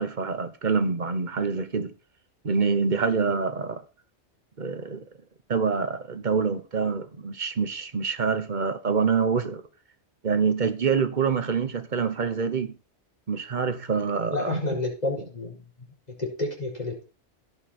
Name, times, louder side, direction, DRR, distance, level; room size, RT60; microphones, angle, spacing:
voice 1, 0.0-1.9 2.4-3.8 4.6-5.0 5.5-9.6 10.2-12.8 13.3-14.6, right 5 dB, 45° right, 1.1 m, -26 dB
voice 2, 14.3-15.6 16.2-17.0, left 2 dB, 35° left, 4.5 m, -30 dB
17.0 x 5.7 x 4.3 m
omnidirectional pair, 1.2 m